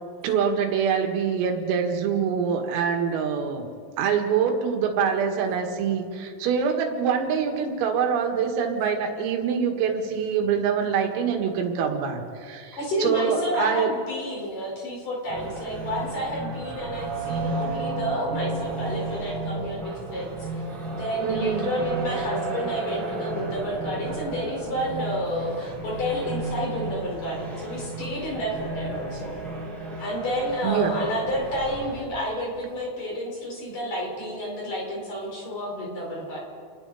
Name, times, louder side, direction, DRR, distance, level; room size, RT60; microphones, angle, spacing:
voice 1, 0.2-3.7 4.0-13.9 21.2-21.7 30.6-31.0, right 7 dB, 90° right, 3 dB, 4.5 m, -25 dB
voice 2, 12.7-20.3 20.9-29.3 30.0-36.4, equal, 40° left, -2 dB, 6.0 m, -30 dB
sound 1, 15.3-32.0, right 2 dB, 30° right, 6.6 m, -33 dB
29.5 x 21.0 x 4.2 m, 2.2 s
omnidirectional pair, 5.8 m